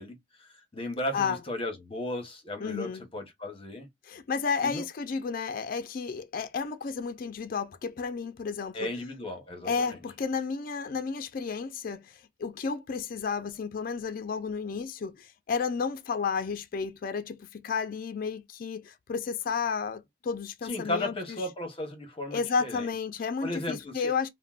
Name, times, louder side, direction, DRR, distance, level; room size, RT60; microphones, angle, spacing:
voice 1, 0.0-3.9 4.6-4.8 8.7-10.0 20.6-22.9 23.4-24.1, left 1 dB, 30° left, 0.9 m, -35 dB
voice 2, 2.6-3.0 4.1-8.9 9.6-21.4 22.3-24.3, left 5 dB, 50° left, 0.4 m, -32 dB
3.5 x 2.1 x 2.3 m
head